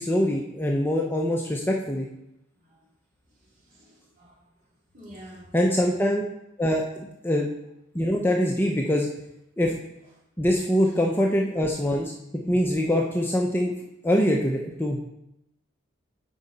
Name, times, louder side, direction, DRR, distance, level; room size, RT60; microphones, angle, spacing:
voice 1, 0.0-2.1 5.5-6.2 6.6-7.5 7.9-9.1 9.6-9.7 10.4-12.1 12.5-13.7 14.0-15.0, equal, 10° left, 0.6 m, -23 dB
voice 2, 3.4-4.4 4.9-5.6 10.8-10.9, equal, 40° right, 3.1 m, -48 dB
8.8 x 5.4 x 4.1 m
head